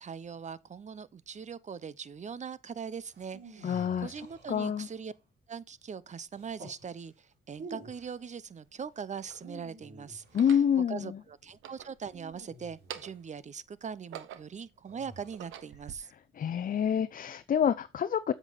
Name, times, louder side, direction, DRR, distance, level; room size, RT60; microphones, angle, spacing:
voice 1, 0.0-5.1 5.5-16.1, right 6 dB, 35° right, 0.8 m, -41 dB
sound 1, 3.1-5.1 6.3-6.8 7.5-8.2 9.2-10.6 12.1-13.3 14.9-15.6, right 2 dB, 55° right, 5.0 m, -49 dB
voice 2, 3.6-4.1 4.5-4.9 10.3-11.2 16.4-18.3, left 8 dB, 45° left, 0.6 m, -27 dB
sound 2, 7.7-7.8 8.6-9.5 10.2-10.7 11.5-12.4 12.7-13.3 13.8-14.7 15.2-16.0, right 10 dB, 85° right, 1.1 m, -47 dB
8.0 x 7.5 x 4.1 m
cardioid pair, 90°, 20 cm